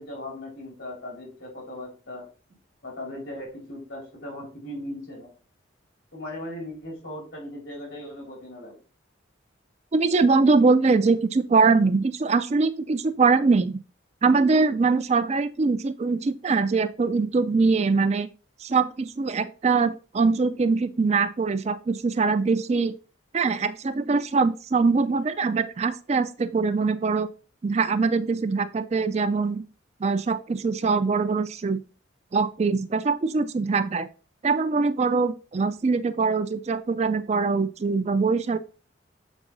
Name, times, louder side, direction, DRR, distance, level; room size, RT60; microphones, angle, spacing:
voice 1, 0.0-2.3 2.8-5.3 6.1-8.8, left 1 dB, 80° left, -1 dB, 4.0 m, -38 dB
voice 2, 9.9-13.8 14.2-18.3 18.6-22.9 23.3-27.3 27.6-29.6 30.0-31.8 32.3-34.1 34.4-38.6, right 4 dB, 35° right, 11 dB, 0.4 m, -23 dB
7.1 x 4.7 x 3.9 m, 0.35 s
head